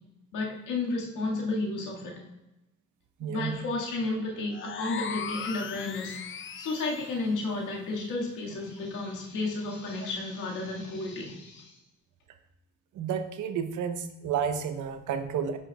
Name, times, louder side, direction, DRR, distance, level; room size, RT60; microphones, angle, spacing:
voice 1, 0.3-2.2 3.3-6.2 6.6-11.8, left 2 dB, 85° left, -1 dB, 1.9 m, -32 dB
voice 2, 3.2-3.7 12.9-15.6, right 7 dB, 75° right, 8 dB, 0.8 m, -31 dB
sound 1, 4.5-7.2, left 7 dB, 40° left, 0.6 m, -38 dB
10.5 x 5.9 x 2.3 m, 0.97 s
cardioid pair, 90°, 30 cm